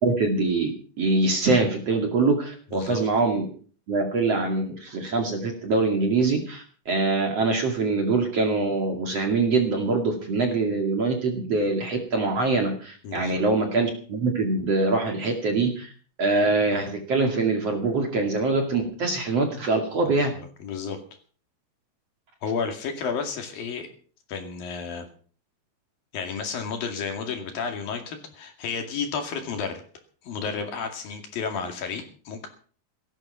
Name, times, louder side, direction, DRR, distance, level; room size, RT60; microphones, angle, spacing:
voice 1, 0.0-0.7 1.0-3.5 3.9-15.9 16.2-20.3, right 3 dB, 45° right, 4 dB, 2.9 m, -24 dB
voice 2, 2.7-3.1 13.0-13.4 20.2-21.0 22.4-23.9 24.3-25.1 26.1-29.8 30.2-32.5, left 5 dB, 60° left, 5 dB, 3.9 m, -32 dB
17.0 x 12.5 x 5.7 m, 0.44 s
omnidirectional pair, 4.8 m